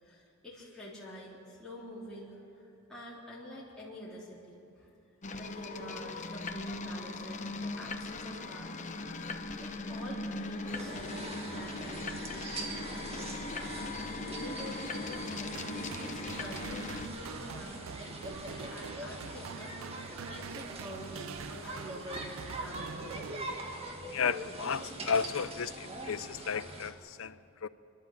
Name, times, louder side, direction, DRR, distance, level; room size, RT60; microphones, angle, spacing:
voice 1, 0.0-4.9 5.3-8.8 9.6-13.4 14.2-23.1, equal, 5° left, -10 dB, 3.7 m, -47 dB
sound 1, 5.2-17.1, left 2 dB, 35° left, 0.9 m, -39 dB
sound 2, 10.7-26.9, right 1 dB, 30° right, 1.8 m, -43 dB
sound 3, 15.5-24.0, right 7 dB, 70° right, 0.4 m, -45 dB
voice 2, 24.1-27.7, left 6 dB, 75° left, 16 dB, 0.6 m, -33 dB
29.5 x 11.5 x 7.5 m, 2.7 s
head